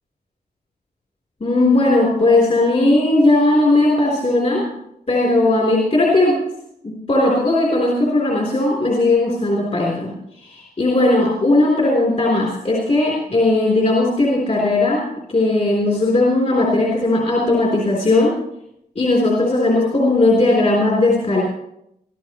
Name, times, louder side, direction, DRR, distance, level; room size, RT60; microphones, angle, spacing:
voice 1, 1.4-4.7 5.1-6.4 6.8-10.1 10.4-15.0 15.3-18.3 19.0-21.4, left 2 dB, 40° left, -3 dB, 3.7 m, -17 dB
23.0 x 14.5 x 3.1 m, 0.80 s
wide cardioid pair, 160°, 17 cm